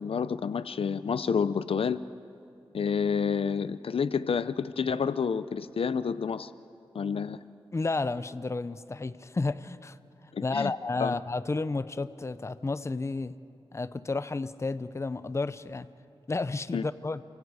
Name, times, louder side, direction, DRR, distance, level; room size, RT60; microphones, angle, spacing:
voice 1, 0.0-2.0 2.7-6.5 6.9-7.4 10.3-10.7 11.0-11.2 16.7-16.8, left 6 dB, 80° left, 15 dB, 0.6 m, -29 dB
voice 2, 7.7-10.0 10.4-13.4 13.7-15.9 16.3-17.2, left 3 dB, 30° left, 14 dB, 0.6 m, -31 dB
29.5 x 25.0 x 4.9 m, 2.8 s
wide cardioid pair, 95°, 10 cm